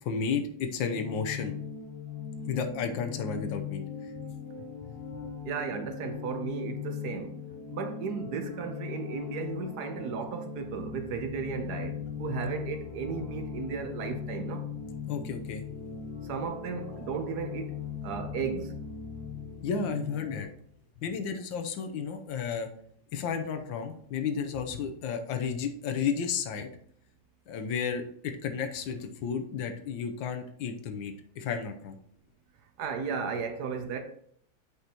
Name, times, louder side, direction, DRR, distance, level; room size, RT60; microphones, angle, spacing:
voice 1, 0.0-1.5 2.5-4.1 4.6-5.0 15.1-15.6 19.6-20.5 21.0-22.7 23.1-26.7 27.5-32.0, left 6 dB, 85° left, 1.5 m, -33 dB
sound 1, 0.9-20.4, left 7 dB, 5° right, 2.1 m, -39 dB
voice 2, 5.4-7.4 7.7-14.7 16.2-17.8 18.0-18.8 32.8-34.0, right 6 dB, 65° right, 1.2 m, -35 dB
7.9 x 5.3 x 2.9 m
omnidirectional pair, 2.0 m